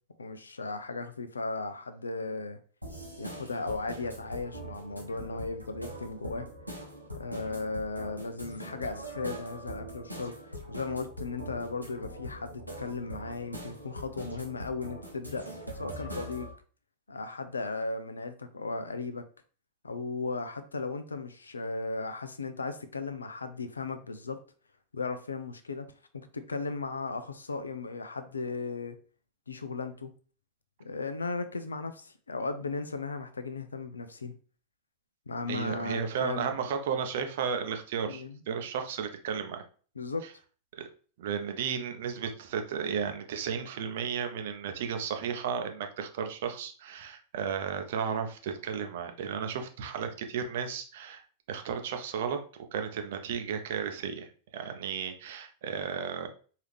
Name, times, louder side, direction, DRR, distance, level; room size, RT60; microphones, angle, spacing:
voice 1, 0.2-2.6 3.2-6.5 7.1-10.4 10.7-15.5 15.7-16.5 17.1-19.3 19.8-24.4 24.9-25.9 26.1-29.0 29.5-30.1 30.8-34.3 35.3-36.6 38.1-38.4 40.0-40.3, left 3 dB, 75° left, 10 dB, 0.5 m, -36 dB
sound 1, 2.8-16.5, equal, 90° right, 0.9 m, -42 dB
voice 2, 35.5-39.6 40.8-40.9 41.2-52.4 52.7-54.3 54.5-56.3, right 7 dB, 55° right, 6 dB, 0.6 m, -34 dB
4.7 x 2.8 x 3.3 m, 0.40 s
figure-of-eight pair, 90°, 0 cm